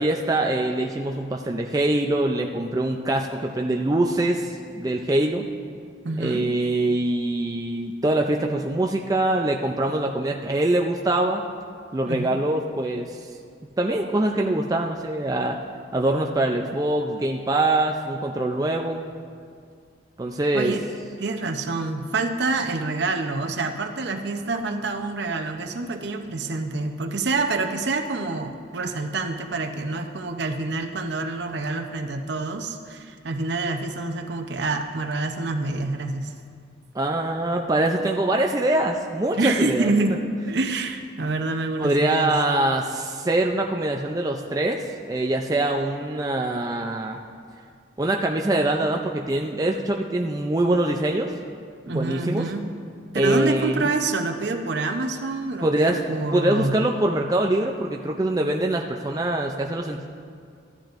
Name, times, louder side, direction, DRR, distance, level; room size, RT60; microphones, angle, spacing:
voice 1, 0.0-5.4 6.2-11.4 11.9-13.3 13.8-15.6 15.9-19.1 20.2-20.8 36.9-39.9 41.8-47.2 48.0-51.3 51.9-52.5 53.1-53.8 55.6-56.0 56.3-60.1, right 1 dB, 20° right, 1 dB, 0.4 m, -24 dB
voice 2, 6.0-6.5 12.1-12.4 20.5-20.8 21.2-36.3 39.4-42.3 51.9-52.6 53.1-56.8, right 3 dB, 60° right, 5 dB, 0.7 m, -27 dB
15.0 x 10.5 x 2.5 m, 2.2 s
head